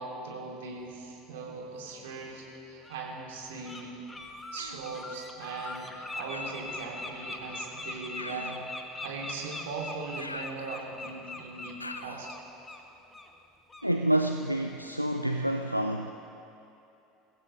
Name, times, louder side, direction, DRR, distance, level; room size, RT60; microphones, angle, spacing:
voice 1, 0.0-4.1 4.5-12.3, right 4 dB, 65° right, -2 dB, 2.8 m, -40 dB
Bird, 2.0-2.1 2.8-3.0 3.4-3.8 4.1-12.8 13.1-13.3 13.7-13.9, left 2 dB, 15° left, 1.4 m, -41 dB
Human voice, 4.6-4.9 6.3-6.8 8.1-8.7 10.2-11.1 11.8-12.3, left 2 dB, 85° left, 0.3 m, -43 dB
voice 2, 13.8-16.1, right 1 dB, 90° right, 5 dB, 0.4 m, -28 dB
23.0 x 16.0 x 3.3 m, 2.8 s
figure-of-eight pair, 70°, 0 cm